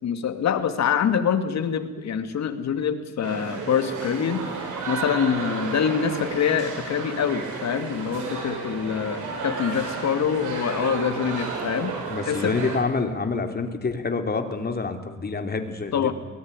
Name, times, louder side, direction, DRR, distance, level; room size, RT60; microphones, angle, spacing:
voice 1, 0.0-4.4 4.9-11.9 12.2-12.5 15.9-16.1, left 7 dB, 60° left, 9 dB, 2.5 m, -25 dB
sound 1, 3.2-12.8, right 4 dB, 80° right, 7.1 m, -32 dB
voice 2, 12.1-16.1, left 4 dB, 30° left, 5 dB, 3.3 m, -27 dB
22.5 x 19.0 x 9.9 m, 1.2 s
cardioid pair, 90°, 30 cm